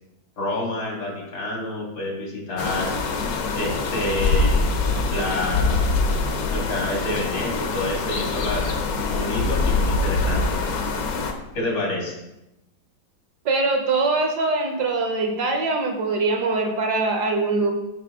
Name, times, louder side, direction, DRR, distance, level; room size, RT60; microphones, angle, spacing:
voice 1, 0.4-2.9 3.5-4.8 5.1-5.9 6.5-10.6 11.5-12.2, left 1 dB, 85° left, -2 dB, 2.9 m, -28 dB
sound 1, 2.6-11.3, left 3 dB, 60° left, 1.1 m, -24 dB
voice 2, 13.4-17.7, right 3 dB, 65° right, 4 dB, 1.4 m, -22 dB
7.4 x 5.3 x 3.6 m, 0.92 s
omnidirectional pair, 2.1 m